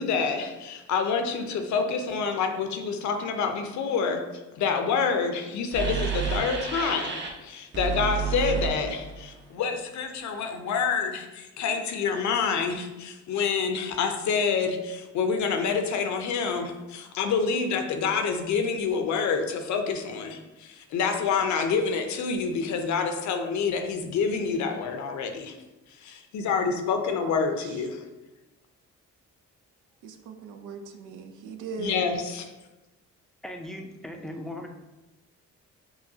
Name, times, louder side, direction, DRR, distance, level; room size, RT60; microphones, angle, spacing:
voice 1, 0.0-4.2 4.6-25.6 26.0-28.0 31.8-32.5, left 5 dB, 70° left, 5 dB, 0.6 m, -27 dB
sound 1, 5.7-7.3 7.7-9.4, right 6 dB, 35° right, 0.8 m, -30 dB
voice 2, 27.1-27.7 30.0-32.1, right 5 dB, 80° right, 5 dB, 0.5 m, -39 dB
voice 3, 33.4-34.7, left 1 dB, ahead, 3 dB, 0.4 m, -38 dB
5.5 x 2.2 x 2.7 m, 1.0 s
cardioid pair, 90°, 30 cm